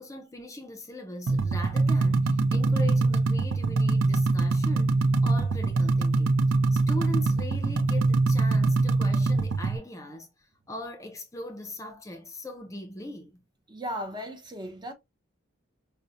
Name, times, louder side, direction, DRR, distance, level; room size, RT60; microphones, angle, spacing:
voice 1, 0.0-4.9 5.2-6.3 6.7-10.3 10.7-13.4, left 1 dB, 15° left, 0.5 m, -40 dB
sound 1, 1.3-9.8, right 3 dB, 80° right, 0.5 m, -23 dB
voice 2, 13.7-14.9, equal, 20° right, 0.7 m, -36 dB
5.1 x 2.1 x 2.6 m
head